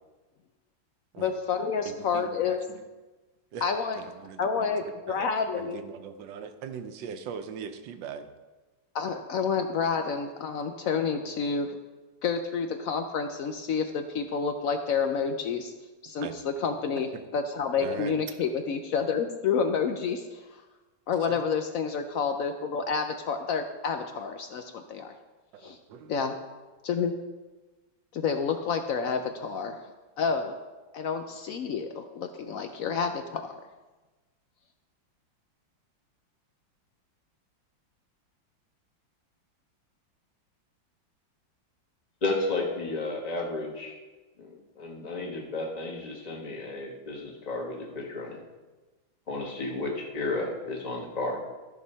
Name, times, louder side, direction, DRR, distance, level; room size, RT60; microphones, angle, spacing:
voice 1, 1.2-2.6 3.6-4.0 4.4-5.8 8.9-11.8 12.2-15.7 16.0-17.1 17.3-20.4 21.1-25.1 25.6-25.8 26.1-26.3 26.8-27.1 28.1-29.8 30.2-30.5 30.9-33.6, left 6 dB, 75° left, 7 dB, 0.7 m, -29 dB
voice 2, 1.8-2.8 3.5-3.7 4.0-5.3 5.6-8.3 16.2-16.3 17.1-17.3 17.8-18.1 21.2-21.4 25.5-26.1, right 7 dB, 75° right, 8 dB, 1.4 m, -40 dB
voice 3, 42.2-43.9 44.4-48.4 49.3-51.4, left 2 dB, 20° left, -1 dB, 1.4 m, -32 dB
14.0 x 4.8 x 5.5 m, 1.2 s
omnidirectional pair, 2.1 m